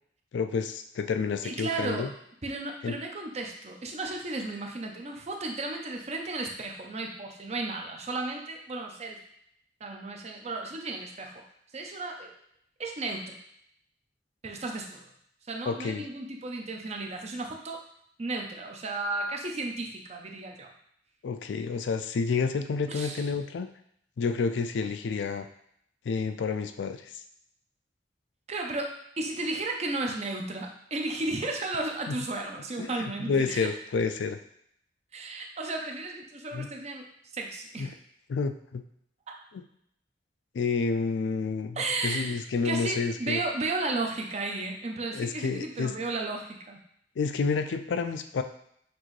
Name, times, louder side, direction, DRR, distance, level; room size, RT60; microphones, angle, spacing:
voice 1, 0.3-2.1 2.8-3.0 15.7-16.0 21.2-23.7 24.2-25.5 26.1-27.1 32.1-32.2 32.8-34.4 36.5-36.7 37.8-37.9 38.3-38.8 39.5-39.6 40.5-43.4 45.1-45.9 47.2-48.4, left 4 dB, 80° left, 8 dB, 0.4 m, -29 dB
voice 2, 1.4-2.1 2.4-9.2 9.8-11.3 11.7-12.3 12.8-13.4 14.4-15.1 15.5-17.8 18.2-20.7 22.9-23.2 28.5-33.7 35.1-37.1 37.3-37.9 39.3-39.4 41.8-46.8, right 2 dB, 35° right, 2 dB, 0.6 m, -34 dB
6.0 x 2.6 x 3.1 m, 0.70 s
head